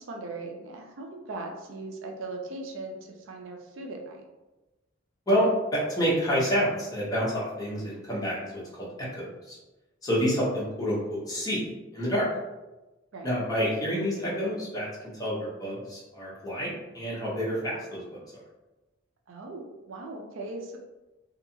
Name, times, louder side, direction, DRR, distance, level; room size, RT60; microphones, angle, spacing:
voice 1, 0.0-4.2 13.1-13.3 19.3-20.8, right 2 dB, 75° right, 2 dB, 0.4 m, -39 dB
voice 2, 5.3-9.6 10.0-11.6 11.9-12.3 13.2-14.9 15.2-18.0, equal, 20° left, -6 dB, 0.7 m, -28 dB
2.7 x 2.3 x 2.6 m, 1.1 s
head